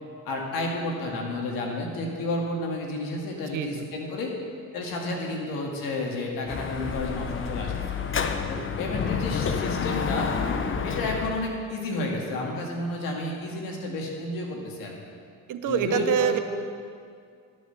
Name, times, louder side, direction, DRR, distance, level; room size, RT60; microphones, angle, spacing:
voice 1, 0.3-4.3 4.7-7.7 8.5-10.3 10.8-15.0 15.7-16.4, left 2 dB, 85° left, 0 dB, 2.0 m, -31 dB
voice 2, 3.4-3.9 15.5-16.4, right 9 dB, 65° right, 9 dB, 0.7 m, -26 dB
Dog / Motorcycle, 6.5-11.4, left 6 dB, 35° left, 0.8 m, -29 dB
12.0 x 6.4 x 6.8 m, 2.2 s
supercardioid pair, 75°, 34 cm